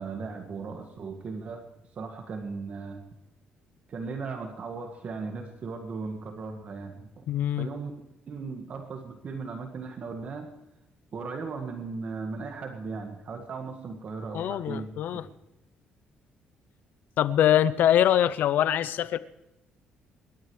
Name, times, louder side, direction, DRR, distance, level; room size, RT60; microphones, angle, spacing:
voice 1, 0.0-1.6 1.9-3.0 3.9-7.2 7.6-7.9 8.3-10.5 11.1-15.3, right 4 dB, 45° right, 1.9 m, -37 dB
voice 2, 7.3-7.7 14.3-15.2 17.2-19.2, left 11 dB, 70° left, 0.7 m, -23 dB
27.5 x 12.5 x 3.3 m
cardioid pair, 115°, 3 cm